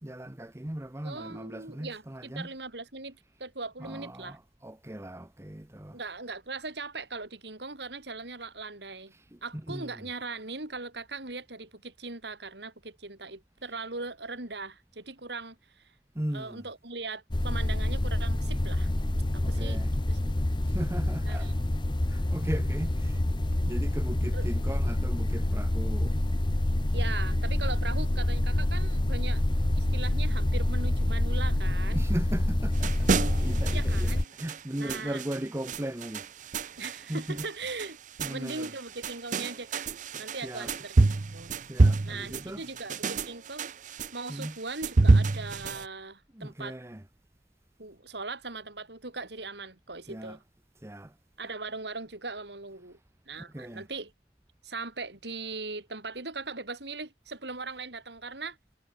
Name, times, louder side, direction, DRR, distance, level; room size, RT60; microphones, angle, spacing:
voice 1, 0.0-2.5 3.8-6.0 9.1-10.0 16.1-16.6 19.4-19.9 20.6-21.5 22.1-23.2 23.6-26.2 31.2-31.4 31.9-33.0 33.4-36.3 36.6-36.8 37.1-37.5 38.2-38.7 40.4-40.7 41.7-42.6 44.3-44.6 46.3-47.0 50.1-50.4 50.8-51.1 53.4-53.9, right 1 dB, 15° right, 0.9 m, -37 dB
voice 2, 1.0-4.4 5.9-9.1 9.4-15.9 16.3-18.9 19.3-19.8 20.1-20.3 21.3-21.5 24.3-24.5 26.9-29.4 29.8-32.1 33.7-34.3 34.8-35.2 36.8-38.0 38.3-39.9 40.2-41.0 41.3-41.5 42.0-43.7 44.1-46.8 47.8-50.4 51.4-53.0 53.3-54.1 54.6-58.6, right 3 dB, 70° right, 4.2 m, -39 dB
sound 1, 17.3-34.2, left 1 dB, 25° left, 0.8 m, -27 dB
sound 2, 32.7-45.9, right 3 dB, 45° right, 0.6 m, -28 dB
head